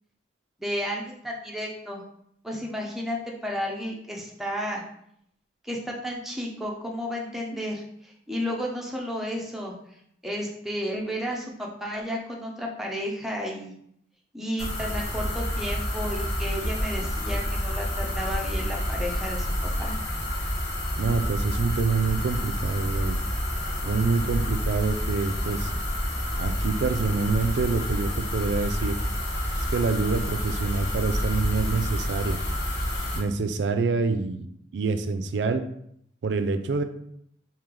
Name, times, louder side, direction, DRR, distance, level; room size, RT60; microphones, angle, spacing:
voice 1, 0.6-2.0 2.4-4.8 5.6-9.7 10.2-13.7 14.3-19.5 19.8-20.0, equal, ahead, -1 dB, 0.6 m, -32 dB
sound 1, 14.6-33.2, equal, 60° left, 1.2 m, -29 dB
voice 2, 21.0-23.2 23.8-25.7 26.4-29.0 29.7-32.4 33.2-34.5 34.7-35.6 36.2-36.8, right 4 dB, 70° right, 9 dB, 0.4 m, -26 dB
3.2 x 2.7 x 3.7 m, 0.71 s
head